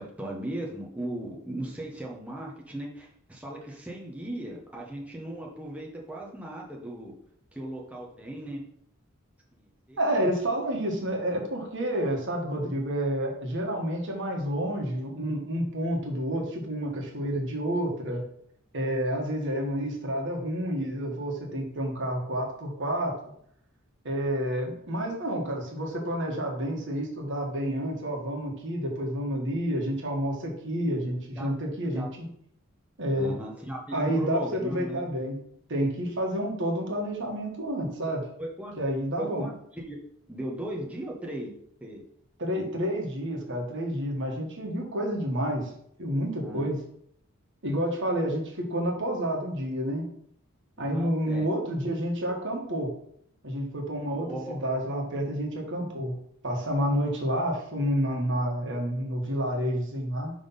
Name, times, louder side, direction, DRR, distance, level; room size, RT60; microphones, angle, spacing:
voice 1, 0.0-7.1 7.5-8.6 9.5-10.0 31.3-31.5 31.9-32.1 33.1-35.0 38.4-38.8 39.2-40.0 40.3-41.5 41.8-42.0 46.4-46.7 50.8-51.5 54.1-54.6, right 1 dB, 5° right, -3 dB, 0.9 m, -37 dB
voice 2, 10.0-18.2 18.7-23.1 24.0-32.1 33.0-33.3 33.9-35.4 35.7-38.2 38.8-39.4 42.4-45.7 46.0-46.8 47.6-50.0 50.8-52.9 53.4-56.1 56.4-60.3, equal, 60° right, 0 dB, 1.5 m, -29 dB
5.6 x 3.5 x 5.5 m, 0.69 s
head